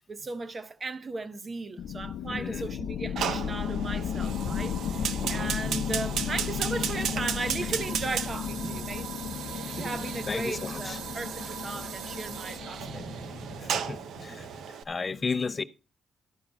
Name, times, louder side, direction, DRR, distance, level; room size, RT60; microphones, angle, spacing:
voice 1, 0.0-9.1 9.8-13.0, right 3 dB, 35° right, 0.8 m, -37 dB
sound 1, 1.8-14.0, left 8 dB, 80° left, 0.6 m, -34 dB
voice 2, 2.3-2.7 10.3-11.0 13.4-15.6, left 4 dB, 35° left, 0.5 m, -34 dB
Fire, 3.2-14.8, right 8 dB, 80° right, 0.7 m, -35 dB
sound 2, 3.4-14.7, right 2 dB, 55° right, 4.5 m, -47 dB
13.0 x 5.8 x 5.3 m
cardioid pair, 85°, 0 cm